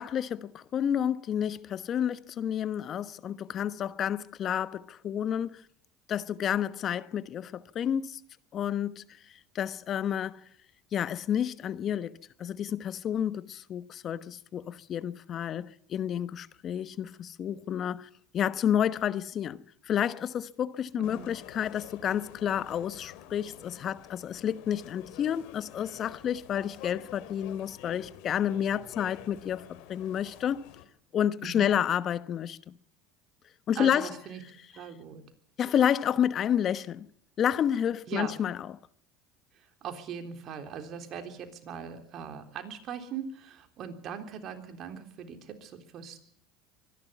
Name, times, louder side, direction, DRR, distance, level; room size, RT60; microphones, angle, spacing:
voice 1, 0.0-5.6 6.1-8.2 8.5-9.0 9.5-10.4 10.9-12.1 12.4-30.7 31.1-32.7 33.7-34.1 35.6-37.1 37.4-38.6, left 9 dB, 45° left, 1.1 m, -30 dB
voice 2, 20.9-21.3 31.4-31.7 33.8-34.4 34.7-35.2 38.1-38.4 39.5-46.2, right 7 dB, 50° right, 3.6 m, -40 dB
sound 1, 21.0-30.8, left 12 dB, 70° left, 2.5 m, -49 dB
24.0 x 11.5 x 9.3 m
hypercardioid pair, 90°, 0 cm